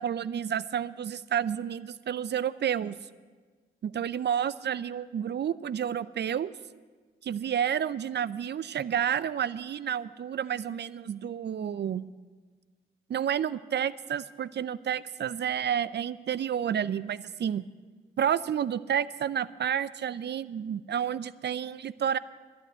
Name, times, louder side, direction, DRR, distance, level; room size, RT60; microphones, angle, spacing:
voice 1, 0.0-3.0 3.8-6.5 7.2-12.1 13.1-17.6 18.2-22.2, right 9 dB, 55° right, 19 dB, 0.5 m, -30 dB
12.0 x 9.3 x 8.1 m, 1.4 s
supercardioid pair, 50°, 21 cm